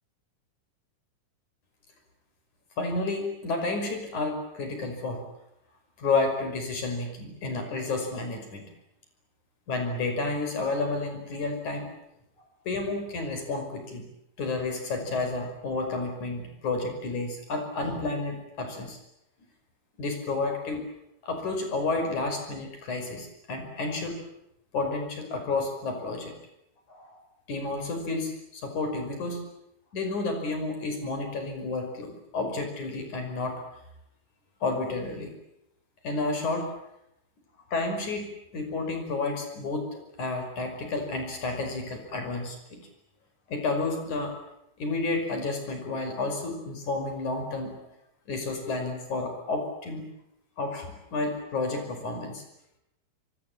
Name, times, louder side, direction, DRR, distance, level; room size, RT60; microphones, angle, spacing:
voice 1, 2.8-5.2 6.0-8.7 9.7-11.9 12.7-14.1 14.4-19.0 20.0-20.9 21.2-24.2 24.7-26.4 26.9-27.2 27.5-29.4 29.9-33.6 34.6-35.3 36.0-36.7 37.7-42.8 43.5-44.3 44.8-47.8 48.3-50.1 50.6-52.4, left 3 dB, 50° left, 5 dB, 6.6 m, -31 dB
25.0 x 24.0 x 8.8 m, 0.80 s
omnidirectional pair, 4.6 m